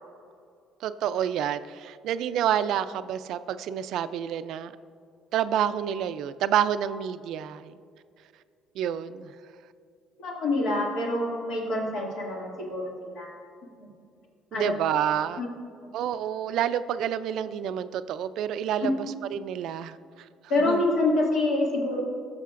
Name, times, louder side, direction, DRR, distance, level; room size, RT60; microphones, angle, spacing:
voice 1, 0.8-4.7 5.3-7.7 8.7-9.3 14.5-15.4 15.9-20.3 20.6-20.8, right 9 dB, 70° right, 13 dB, 0.3 m, -28 dB
voice 2, 10.2-13.3 13.8-13.9 14.5-14.7 15.4-15.5 18.8-18.9 20.5-22.0, left 2 dB, 75° left, -3 dB, 2.3 m, -26 dB
17.5 x 6.4 x 2.5 m, 2.3 s
cardioid pair, 110°, 0 cm